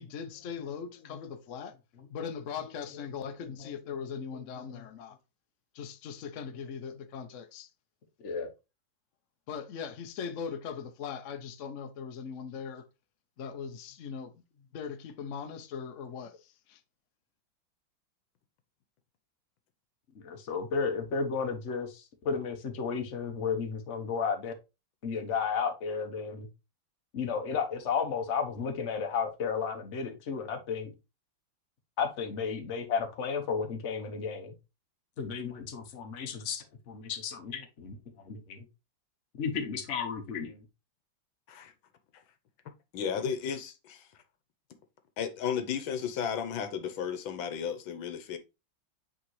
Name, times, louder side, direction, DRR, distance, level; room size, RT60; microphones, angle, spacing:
voice 1, 0.0-1.8 2.1-5.2 5.7-7.7 9.5-12.8 13.4-14.4 14.7-16.8, left 6 dB, 65° left, 0.7 m, -40 dB
voice 2, 20.2-24.5 25.0-26.5 27.1-30.9 32.0-34.5 35.2-38.0 38.2-38.6 39.4-40.6, left 5 dB, 45° left, 1.1 m, -33 dB
voice 3, 42.9-44.1 45.2-48.4, left 7 dB, 80° left, 1.6 m, -34 dB
8.6 x 3.8 x 3.1 m
omnidirectional pair, 2.2 m